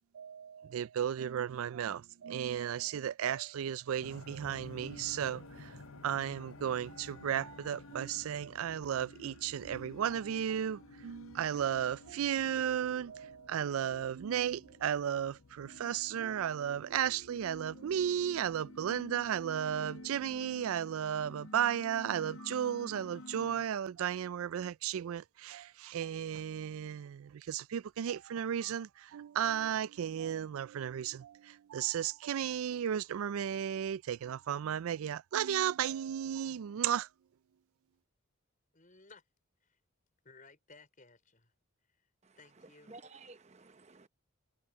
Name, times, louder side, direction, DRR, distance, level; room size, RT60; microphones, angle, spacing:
voice 1, 0.1-37.1, right 9 dB, 80° right, 0.3 m, -34 dB
sound 1, 4.0-9.8, left 2 dB, 85° left, 3.3 m, -55 dB
sound 2, 4.4-23.7, left 2 dB, 70° left, 0.7 m, -52 dB
voice 2, 38.7-39.2 39.6-39.8 40.2-41.5 41.9-42.1 42.4-43.0, left 3 dB, 40° left, 4.7 m, -59 dB
voice 3, 42.2-44.1, right 3 dB, 30° right, 0.8 m, -55 dB
head